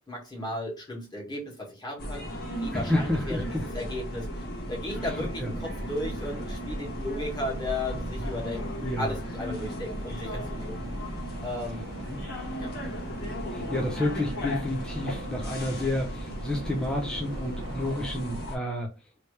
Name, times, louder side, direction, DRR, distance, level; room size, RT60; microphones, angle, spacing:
voice 1, 0.1-10.8 11.4-11.9 12.6-12.7, left 1 dB, 20° left, 1.7 m, -35 dB
sound 1, 2.0-18.6, equal, 50° left, 1.3 m, -36 dB
voice 2, 2.7-3.6 5.0-5.5 8.8-9.1 12.1-12.2 13.5-18.9, left 1 dB, 5° left, 0.5 m, -30 dB
sound 2, 5.0-18.5, right 2 dB, 75° right, 0.8 m, -42 dB
3.3 x 2.8 x 3.2 m
head